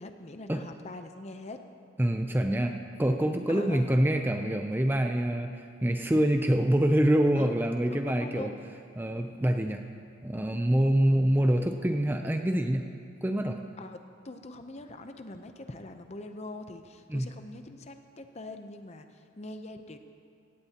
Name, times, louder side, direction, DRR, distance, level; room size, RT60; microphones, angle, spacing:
voice 1, 0.0-1.6 3.5-4.1 7.4-7.6 7.9-8.6 11.1-11.4 13.8-20.0, left 2 dB, 35° left, 7 dB, 0.7 m, -43 dB
voice 2, 2.0-8.5 9.0-9.8 10.2-12.9 13.2-13.6 17.1-17.3, right 1 dB, 10° right, 5 dB, 0.4 m, -26 dB
17.0 x 16.0 x 2.9 m, 2.2 s
head